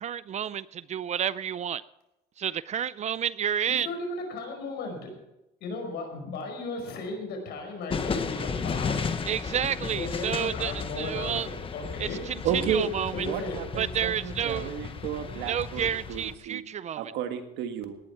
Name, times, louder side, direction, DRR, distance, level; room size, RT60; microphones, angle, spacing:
voice 1, 0.0-1.8 2.4-3.9 9.3-11.5 12.0-13.3 13.8-14.7 15.3-17.1, right 9 dB, 45° right, 18 dB, 0.4 m, -30 dB
voice 2, 3.8-5.1 5.6-9.2 9.9-12.2 13.1-13.6, left 2 dB, 75° left, 3 dB, 5.3 m, -36 dB
sound 1, 7.9-16.3, left 5 dB, 30° left, 1.2 m, -34 dB
voice 3, 12.4-12.9 13.3-16.6 17.0-18.0, right 8 dB, 90° right, 7 dB, 1.7 m, -32 dB
18.0 x 11.0 x 4.7 m, 0.91 s
cardioid pair, 110°, 17 cm